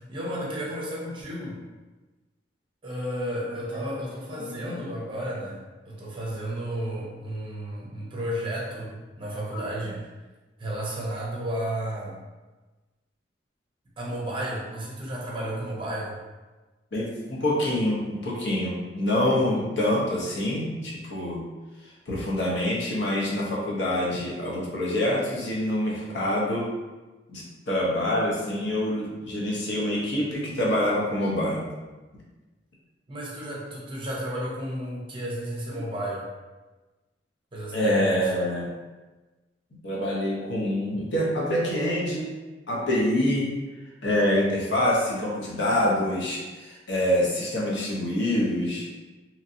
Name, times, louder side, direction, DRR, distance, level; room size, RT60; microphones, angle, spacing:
voice 1, 0.0-1.6 2.8-10.1 10.6-12.2 14.0-16.2 33.1-36.3 37.5-38.1, right 1 dB, 25° right, -4 dB, 0.7 m, -32 dB
voice 2, 4.3-4.7 9.5-9.6 16.9-21.4 22.1-26.7 27.3-31.7 37.7-38.7 39.8-42.3 42.7-43.5 44.0-48.9, left 1 dB, 65° left, -4 dB, 0.7 m, -26 dB
2.9 x 2.6 x 2.6 m, 1.2 s
head